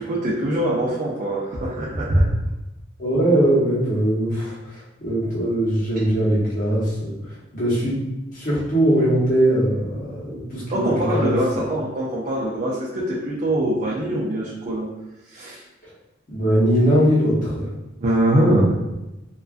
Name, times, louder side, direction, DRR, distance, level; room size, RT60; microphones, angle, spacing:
voice 1, 0.0-2.3 10.7-14.9 15.3-15.6 18.0-18.8, right 1 dB, 40° right, -6 dB, 0.4 m, -22 dB
voice 2, 3.0-7.1 7.5-8.0 8.3-11.6 16.3-17.7, right 1 dB, 45° left, -7 dB, 0.9 m, -21 dB
2.4 x 2.2 x 2.4 m, 0.99 s
head